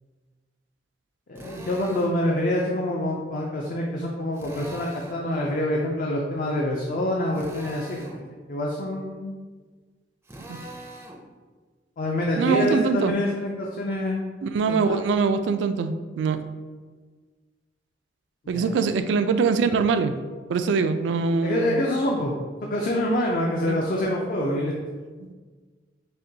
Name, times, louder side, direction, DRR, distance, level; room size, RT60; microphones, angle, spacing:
voice 1, 1.3-8.1 8.5-9.3 12.0-14.2 14.7-15.0 18.5-18.7 21.4-22.3 22.6-24.7, left 1 dB, 50° left, -1 dB, 0.4 m, -26 dB
Drill, 1.3-2.2 4.3-5.2 7.3-8.2 10.2-11.2, right 1 dB, 15° right, 0.4 m, -41 dB
voice 2, 12.4-13.1 14.4-16.4 18.5-20.1 20.5-21.8 23.7-23.8 25.2-25.3, right 5 dB, 85° right, 10 dB, 0.3 m, -23 dB
6.5 x 2.2 x 2.7 m, 1.4 s
head